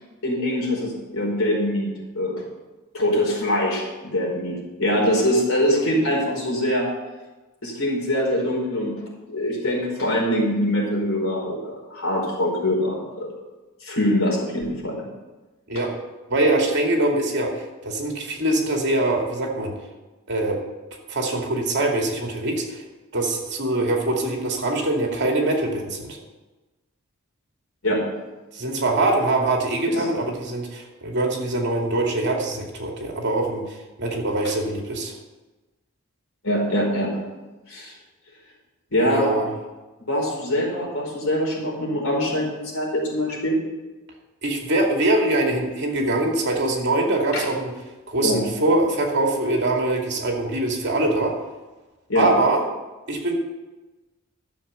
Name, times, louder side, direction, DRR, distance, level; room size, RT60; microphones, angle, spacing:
voice 1, 0.0-2.4 2.9-6.9 7.6-9.0 9.3-13.3 13.8-15.0 15.7-15.8 27.8-28.0 29.9-30.1 36.4-37.1 37.7-37.9 38.9-39.3 40.0-43.6 47.3-47.4 48.2-48.4 52.1-52.3, left 1 dB, 70° left, -2 dB, 4.7 m, -23 dB
voice 2, 16.3-19.7 20.3-20.6 21.1-22.8 23.1-26.2 28.5-35.1 39.0-39.5 44.4-47.7 48.1-51.3 52.1-52.6 53.1-53.3, right 2 dB, 55° right, 1 dB, 2.5 m, -23 dB
12.5 x 7.1 x 6.9 m, 1.2 s
head